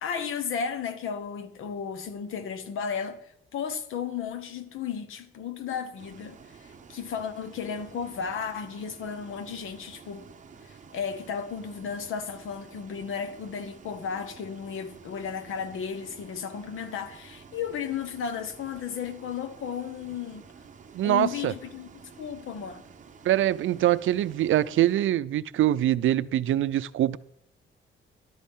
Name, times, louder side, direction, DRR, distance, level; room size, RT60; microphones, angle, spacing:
voice 1, 0.0-3.2 3.5-10.3 10.6-20.4 21.0-22.8, left 7 dB, 85° left, 1.2 m, -34 dB
Bus, 6.0-25.0, right 6 dB, 40° right, 0.8 m, -51 dB
voice 2, 20.9-21.5 23.2-27.2, right 13 dB, 75° right, 0.5 m, -24 dB
13.0 x 12.0 x 3.7 m
cardioid pair, 135°, 21 cm